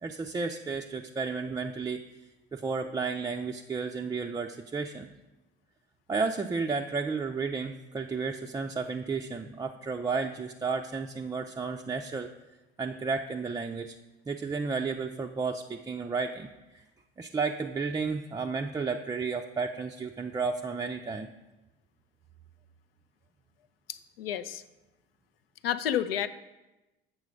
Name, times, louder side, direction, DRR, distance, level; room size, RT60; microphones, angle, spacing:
voice 1, 0.0-2.1 2.5-5.1 6.1-12.3 12.8-14.0 14.3-16.8 17.2-21.3, right 4 dB, 15° right, 3 dB, 0.4 m, -32 dB
voice 2, 23.9-24.6 25.6-26.3, left 10 dB, 75° left, 12 dB, 0.5 m, -30 dB
8.2 x 6.1 x 5.1 m, 1.1 s
figure-of-eight pair, 65°, 29 cm